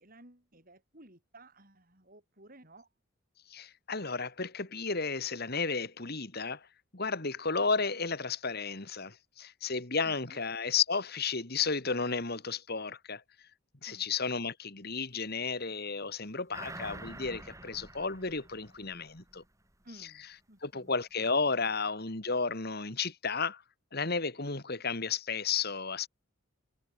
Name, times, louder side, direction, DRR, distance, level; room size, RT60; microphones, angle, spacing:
voice 1, 0.0-2.9 10.0-10.4 13.9-14.1 19.8-21.3, right 1 dB, 40° right, 7.9 m, -56 dB
voice 2, 3.5-6.7 6.9-13.2 13.8-19.4 20.6-23.6 23.9-26.1, left 4 dB, 45° left, 2.4 m, -33 dB
sound 1, 16.5-19.4 19.8-19.9, right 2 dB, 15° right, 7.9 m, -47 dB
head